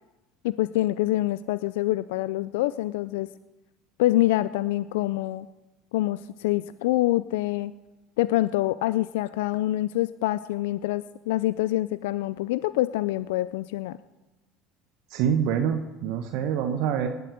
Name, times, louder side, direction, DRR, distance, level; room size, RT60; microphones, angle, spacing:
voice 1, 0.4-3.3 4.0-5.5 5.9-7.7 8.2-14.0, left 16 dB, 75° left, 15 dB, 0.4 m, -26 dB
voice 2, 15.1-17.1, right 8 dB, 65° right, 6 dB, 1.2 m, -26 dB
19.0 x 7.6 x 9.2 m, 1.1 s
hypercardioid pair, 75°, 0 cm